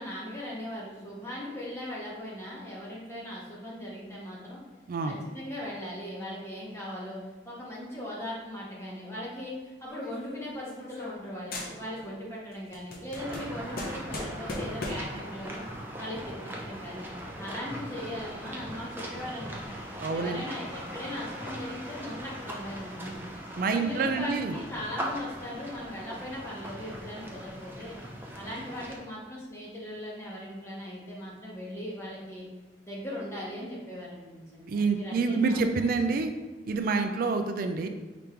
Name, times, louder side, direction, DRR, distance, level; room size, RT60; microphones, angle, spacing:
voice 1, 0.0-4.6 5.1-7.2 7.4-15.6 16.0-17.1 17.4-19.8 20.1-23.2 23.7-28.0 28.3-32.4 32.8-36.2, left 1 dB, 15° left, -6 dB, 0.9 m, -39 dB
sound 1, 9.9-11.3 11.5-12.2 12.5-15.2, left 1 dB, 55° left, 0.7 m, -39 dB
sound 2, 13.2-29.0, equal, 10° right, 0.6 m, -40 dB
voice 2, 20.0-20.4 23.6-24.5 34.7-36.3 36.6-37.9, right 4 dB, 50° right, 6 dB, 0.3 m, -27 dB
4.9 x 3.5 x 2.9 m, 1.2 s
head